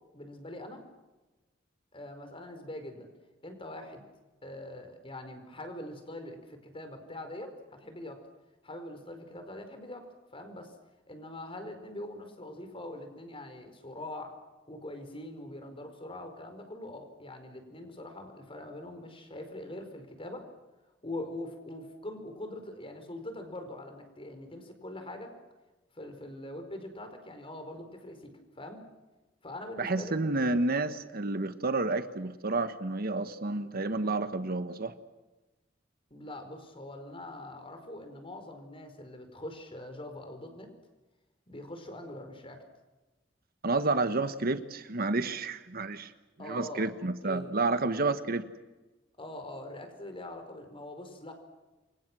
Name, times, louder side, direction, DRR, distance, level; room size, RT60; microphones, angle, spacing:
voice 1, 0.1-0.8 1.9-3.1 3.4-4.0 4.4-8.2 8.6-10.1 10.3-10.7 11.1-14.4 14.7-20.4 21.0-25.3 25.9-28.3 28.6-28.8 29.4-30.2 36.1-40.7 41.5-42.6 46.4-47.5 49.2-51.3, left 1 dB, 30° left, 7 dB, 4.8 m, -43 dB
voice 2, 29.8-35.0 43.6-46.1 46.4-48.5, right 3 dB, 50° right, 10 dB, 1.3 m, -30 dB
28.5 x 24.5 x 6.3 m, 1.1 s
head